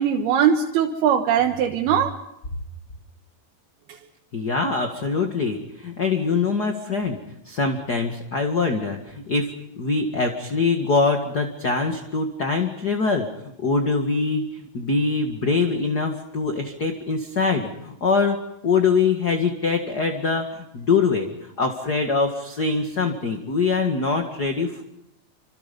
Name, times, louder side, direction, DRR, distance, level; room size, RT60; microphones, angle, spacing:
voice 1, 0.0-2.2, right 8 dB, 90° right, 3.4 m, -20 dB
voice 2, 4.3-7.2 7.5-13.3 13.6-18.4 18.6-21.3 21.6-24.8, left 4 dB, 35° left, 1.9 m, -23 dB
29.5 x 27.0 x 5.5 m
omnidirectional pair, 4.3 m